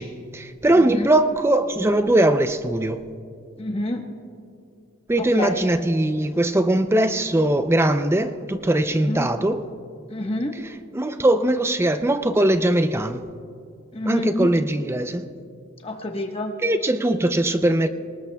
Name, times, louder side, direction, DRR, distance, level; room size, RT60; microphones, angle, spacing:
voice 1, 0.0-3.0 5.1-9.6 10.6-13.3 14.1-15.3 16.6-17.9, right 1 dB, 10° right, 9 dB, 0.5 m, -21 dB
voice 2, 3.6-4.0 5.2-5.6 9.1-9.3 10.1-10.6 13.9-14.5 15.8-16.5, left 1 dB, 30° left, 3 dB, 1.1 m, -28 dB
24.5 x 19.0 x 2.3 m, 2.4 s
head